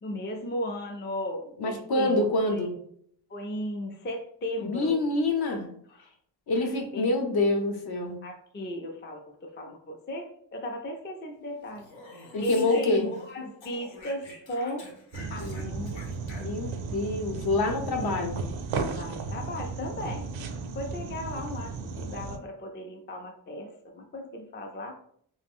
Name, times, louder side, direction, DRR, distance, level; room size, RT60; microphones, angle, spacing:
voice 1, 0.0-2.7 3.3-5.0 5.9-6.1 6.5-7.1 8.2-11.9 12.1-14.9 15.3-16.0 18.9-20.3 20.7-24.9, left 1 dB, 25° left, 2 dB, 0.4 m, -36 dB
voice 2, 1.6-2.7 4.6-5.7 6.5-8.2 12.3-13.1 15.4-16.0 16.4-18.4, left 2 dB, 55° left, 3 dB, 0.7 m, -27 dB
Speech, 11.7-13.3 13.6-16.8, left 2 dB, 85° left, 0.8 m, -48 dB
sound 1, 15.1-22.4, right 4 dB, 85° right, 0.5 m, -35 dB
2.5 x 2.0 x 3.5 m, 0.64 s
cardioid pair, 90°, 45 cm